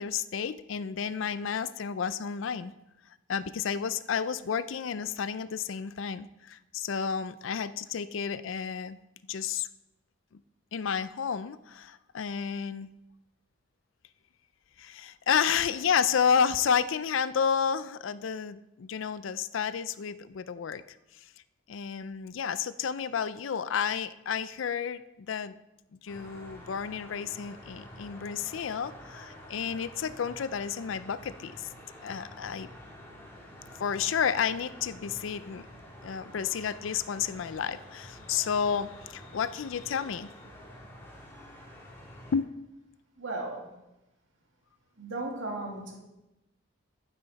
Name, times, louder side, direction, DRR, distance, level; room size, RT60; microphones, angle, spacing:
voice 1, 0.0-2.7 3.3-9.0 9.3-9.7 10.7-12.9 14.8-20.8 21.7-25.5 26.0-31.7 32.0-32.7 33.8-35.7 36.0-40.3 42.3-42.5, left 7 dB, 75° left, 15 dB, 0.4 m, -31 dB
sound 1, 26.1-42.4, equal, 10° left, 2.1 m, -49 dB
voice 2, 43.2-43.7 45.0-46.0, right 2 dB, 70° right, 0 dB, 2.2 m, -36 dB
11.5 x 9.4 x 4.1 m, 0.94 s
head